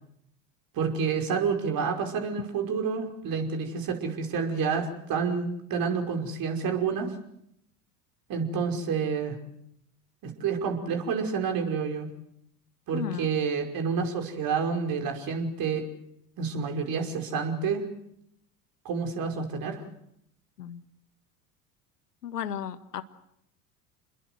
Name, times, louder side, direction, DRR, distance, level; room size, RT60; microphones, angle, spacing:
voice 1, 0.7-7.1 8.3-9.4 10.2-12.1 12.9-15.8 16.4-17.8 18.8-19.8, right 5 dB, 45° right, 4 dB, 5.5 m, -29 dB
voice 2, 12.9-13.3 20.6-20.8 22.2-23.0, left 9 dB, 80° left, 12 dB, 1.6 m, -34 dB
28.5 x 21.5 x 7.9 m, 0.76 s
figure-of-eight pair, 75°, 48 cm